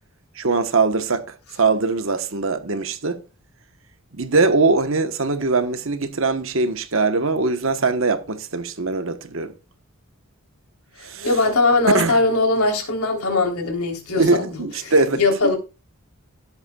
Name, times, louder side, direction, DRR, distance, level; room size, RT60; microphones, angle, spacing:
voice 1, 0.4-1.2 1.6-3.2 4.2-9.5 11.0-11.3 11.9-12.2 14.2-15.2, right 3 dB, 60° right, 1.1 m, -21 dB
voice 2, 11.2-14.5 14.8-15.6, left 3 dB, 80° left, 3.4 m, -20 dB
17.0 x 8.1 x 2.3 m
head